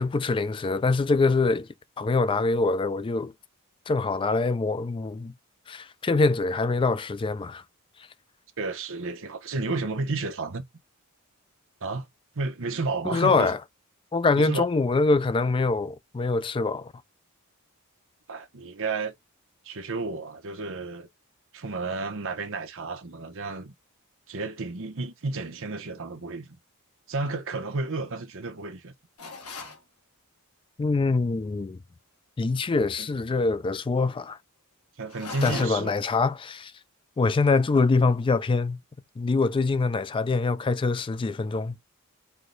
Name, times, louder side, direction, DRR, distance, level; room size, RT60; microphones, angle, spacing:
voice 1, 0.0-1.7 2.0-3.3 3.9-5.3 5.7-7.6 13.1-13.6 14.1-16.9 30.8-31.8 32.4-34.4 35.4-36.7 37.2-38.8 39.2-41.7, left 3 dB, 25° left, 0.3 m, -24 dB
voice 2, 8.6-10.6 11.8-12.1 12.3-13.5 14.4-14.7 18.3-19.1 19.6-21.1 21.5-23.7 24.3-26.6 27.1-28.9 33.0-33.1 35.0-35.9, right 3 dB, 60° right, 0.9 m, -32 dB
sound 1, 29.2-29.8 35.1-36.0, left 3 dB, 90° left, 1.2 m, -37 dB
4.6 x 2.2 x 3.8 m
head